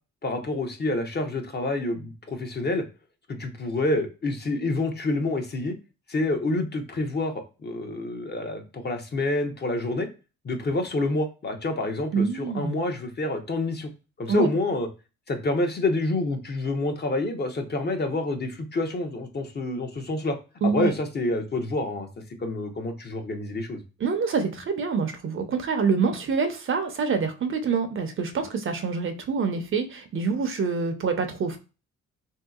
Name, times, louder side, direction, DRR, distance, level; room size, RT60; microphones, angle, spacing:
voice 1, 0.2-2.8 3.3-5.7 6.1-10.1 10.4-13.9 14.2-14.9 15.3-20.4 20.6-22.1 22.4-23.8, left 2 dB, 35° left, 4 dB, 0.8 m, -28 dB
voice 2, 12.1-12.8 14.3-14.5 20.6-20.9 24.0-31.6, right 5 dB, 45° right, 7 dB, 0.6 m, -26 dB
3.3 x 2.7 x 2.3 m, 0.31 s
cardioid pair, 90°, 30 cm